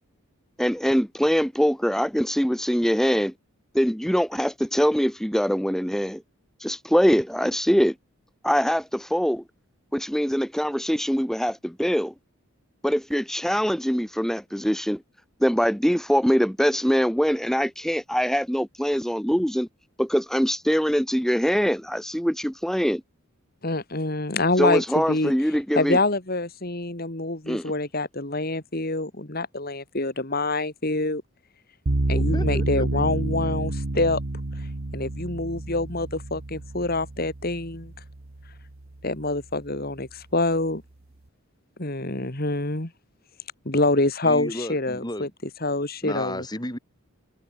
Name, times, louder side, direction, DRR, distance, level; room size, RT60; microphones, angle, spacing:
voice 1, 0.6-3.3 3.7-6.2 6.6-7.9 8.4-9.4 9.9-12.1 12.8-15.0 15.4-19.7 20.0-23.0 24.6-26.0 27.5-27.7, equal, ahead, 1.8 m, -23 dB
voice 2, 23.6-25.3 25.8-31.2 32.1-34.2 34.9-37.9 39.0-40.8 41.8-42.9 43.7-45.3 45.6-46.5, left 2 dB, 45° left, 2.4 m, -26 dB
sound 1, 31.9-39.0, right 2 dB, 65° right, 1.3 m, -29 dB
voice 3, 32.1-32.9 44.2-45.3 46.0-46.8, left 1 dB, 20° left, 4.3 m, -33 dB
head